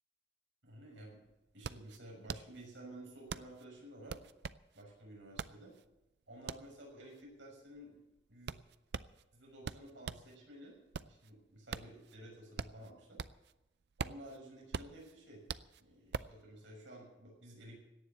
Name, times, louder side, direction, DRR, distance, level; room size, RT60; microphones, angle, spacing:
voice 1, 0.6-1.2 1.5-4.2 4.7-5.7 6.3-8.0 8.3-8.6 9.3-10.8 11.1-13.2 14.0-15.4 15.8-17.8, right 1 dB, 80° right, -2 dB, 6.5 m, -53 dB
sound 1, 0.7-0.8 1.0-10.3 10.7-13.6 13.8-16.4, right 5 dB, 60° right, 0.4 m, -44 dB
17.5 x 7.2 x 9.7 m, 0.96 s
head